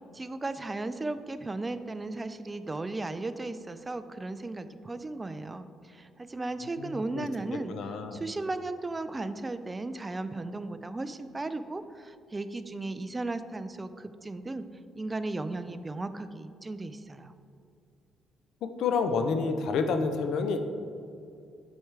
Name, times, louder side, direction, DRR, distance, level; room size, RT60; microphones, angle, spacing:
voice 1, 0.1-14.6 15.0-17.3, right 2 dB, 20° right, 11 dB, 0.3 m, -36 dB
voice 2, 7.7-8.2 18.8-20.6, left 4 dB, 75° left, 7 dB, 0.5 m, -28 dB
7.9 x 4.6 x 3.3 m, 2.5 s
cardioid pair, 90°, 0 cm